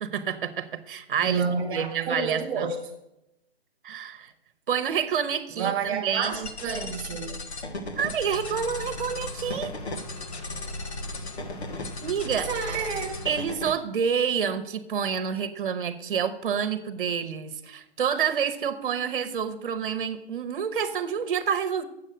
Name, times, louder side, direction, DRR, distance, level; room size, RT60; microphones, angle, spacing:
voice 1, 0.0-1.5 1.7-2.7 3.8-4.3 4.7-6.5 8.0-9.7 12.0-12.5 13.2-21.8, right 7 dB, 55° right, 1.0 m, -28 dB
voice 2, 1.2-2.8 5.5-7.3 12.3-13.2, right 5 dB, 5° right, 0.5 m, -30 dB
sound 1, 6.2-13.7, left 2 dB, 90° left, 1.4 m, -37 dB
sound 2, 8.2-13.5, left 1 dB, 40° left, 1.1 m, -41 dB
7.5 x 6.4 x 7.7 m
hypercardioid pair, 150°, 32 cm